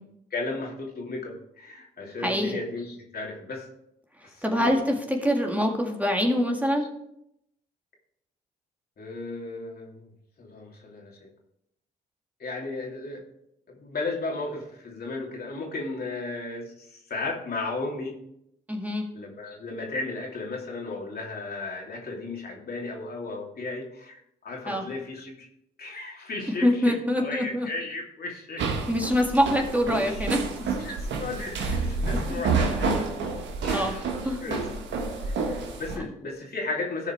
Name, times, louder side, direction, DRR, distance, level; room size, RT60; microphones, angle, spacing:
voice 1, 0.3-3.7 4.2-4.8 9.0-10.1 10.4-11.3 12.4-13.2 13.7-18.1 19.1-25.5 25.8-28.6 29.9-30.3 30.8-33.0 33.6-34.7 35.3-37.1, left 3 dB, 55° left, -1 dB, 2.8 m, -35 dB
voice 2, 2.2-2.6 4.4-6.9 18.7-19.1 24.7-24.8 26.6-27.7 28.9-30.4 32.1-32.4 33.7-33.9 34.2-34.4, equal, 10° right, 1 dB, 1.9 m, -25 dB
sound 1, 28.6-36.0, right 4 dB, 75° right, 1.4 m, -29 dB
13.5 x 4.9 x 4.5 m, 0.78 s
supercardioid pair, 50°, 19 cm